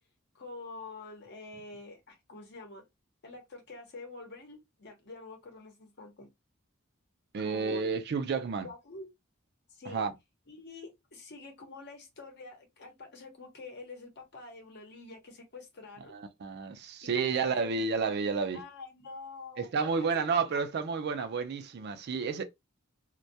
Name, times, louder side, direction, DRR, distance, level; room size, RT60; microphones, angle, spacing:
voice 1, 0.3-2.8 3.2-6.3 7.4-7.9 8.6-9.1 9.7-10.1 10.5-16.2 17.2-17.9 18.5-20.6, left 3 dB, 55° left, 0.8 m, -47 dB
voice 2, 7.3-8.7 9.9-10.1 16.1-18.6 19.6-22.4, right 5 dB, 50° right, 0.4 m, -31 dB
2.2 x 2.1 x 2.7 m
head